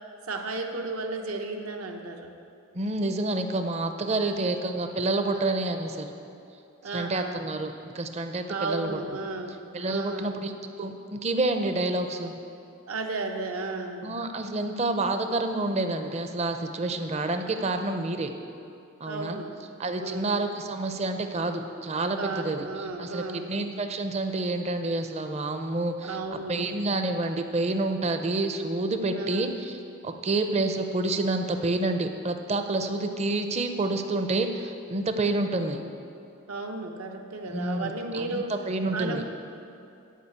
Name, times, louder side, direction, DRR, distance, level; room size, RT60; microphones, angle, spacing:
voice 1, 0.3-2.3 4.2-4.5 5.3-5.5 6.8-7.4 8.5-9.6 9.9-10.4 12.9-14.1 19.0-19.6 20.0-20.4 22.2-23.5 26.0-26.7 29.1-29.5 36.5-38.5 38.9-39.2, right 3 dB, 75° right, 3 dB, 0.9 m, -34 dB
voice 2, 2.7-6.1 6.8-9.0 9.7-10.5 10.8-12.3 14.0-18.3 19.0-19.4 19.8-35.8 37.5-39.2, right 2 dB, 30° right, 7 dB, 0.5 m, -28 dB
10.0 x 5.0 x 8.1 m, 2.7 s
head